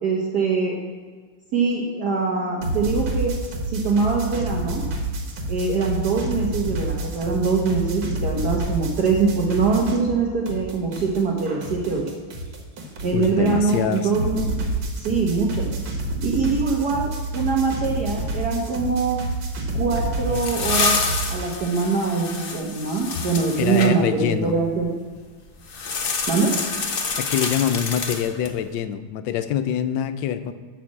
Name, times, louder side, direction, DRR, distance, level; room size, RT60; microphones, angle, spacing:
voice 1, 0.0-0.8 1.5-3.3 3.7-4.8 5.5-12.0 13.0-14.5 15.0-15.7 16.2-19.2 19.7-21.0 21.3-24.9 26.3-26.5, right 4 dB, 60° right, -1 dB, 1.5 m, -23 dB
sound 1, 2.6-10.2 10.5-21.5, right 2 dB, 80° right, 2.1 m, -29 dB
voice 2, 13.1-14.1 20.3-20.4 23.6-24.5 27.2-30.5, left 9 dB, 75° left, 11 dB, 1.2 m, -25 dB
sound 2, 19.9-23.9 25.7-28.6, left 4 dB, 50° left, 0.6 m, -27 dB
11.0 x 4.2 x 7.3 m, 1.5 s
omnidirectional pair, 2.1 m